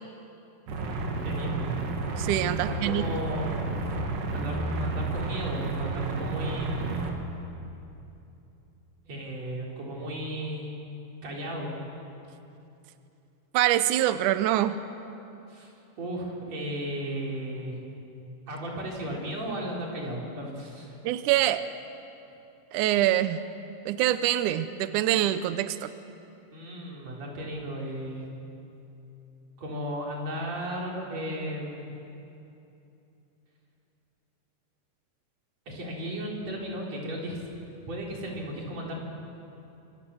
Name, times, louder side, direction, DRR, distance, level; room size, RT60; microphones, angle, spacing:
sound 1, 0.7-7.1, right 3 dB, 65° right, 3.7 m, -31 dB
voice 1, 1.2-1.7 2.6-3.7 4.3-6.9 9.1-10.8 11.2-11.8 15.5-15.7 16.0-17.8 18.5-21.0 26.5-28.3 29.6-31.9 35.7-37.4 37.9-39.0, equal, 45° right, -2 dB, 5.1 m, -35 dB
voice 2, 2.2-3.1 13.5-14.8 21.0-21.7 22.7-23.4 23.9-25.9, right 13 dB, 85° right, 12 dB, 1.8 m, -25 dB
26.5 x 26.0 x 7.1 m, 2.8 s
omnidirectional pair, 4.5 m